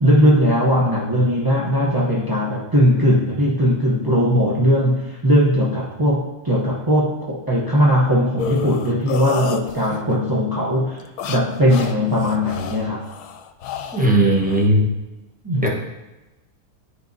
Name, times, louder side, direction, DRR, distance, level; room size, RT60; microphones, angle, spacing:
voice 1, 0.0-11.0 11.3-13.1 15.4-15.7, equal, 25° right, -5 dB, 0.4 m, -19 dB
sound 1, 8.4-10.1 11.0-14.7, left 7 dB, 90° left, 1.1 m, -31 dB
voice 2, 13.9-14.8 15.6-15.7, right 1 dB, 5° right, -2 dB, 0.8 m, -17 dB
10.5 x 4.8 x 2.6 m, 1.1 s
omnidirectional pair, 1.6 m